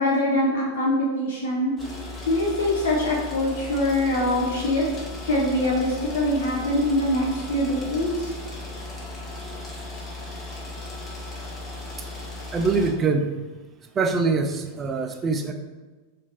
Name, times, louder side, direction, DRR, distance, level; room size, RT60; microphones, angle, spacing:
voice 1, 0.0-1.7 2.3-4.9 5.2-8.3, left 1 dB, 60° left, -3 dB, 0.6 m, -23 dB
sound 1, 1.8-12.9, left 2 dB, 20° left, 0.8 m, -36 dB
voice 2, 12.5-13.4 14.0-15.5, right 4 dB, 25° right, 5 dB, 0.3 m, -24 dB
2.9 x 2.6 x 4.2 m, 1.3 s
figure-of-eight pair, 90°, 0 cm